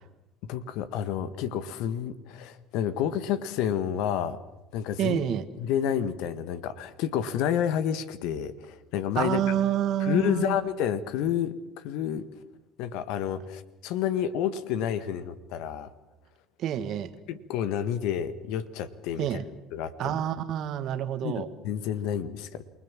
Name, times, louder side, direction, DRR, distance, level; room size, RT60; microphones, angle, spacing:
voice 1, 0.4-4.4 4.7-5.2 5.6-9.6 10.0-12.2 12.8-15.9 17.3-19.4 19.7-20.1 21.2-22.6, left 9 dB, 70° left, 13 dB, 1.6 m, -30 dB
voice 2, 5.0-5.5 9.2-10.6 16.6-17.1 19.2-19.5 20.0-21.5, right 10 dB, 60° right, 11 dB, 1.8 m, -28 dB
28.5 x 19.5 x 7.5 m, 1.0 s
hypercardioid pair, 70°, 0 cm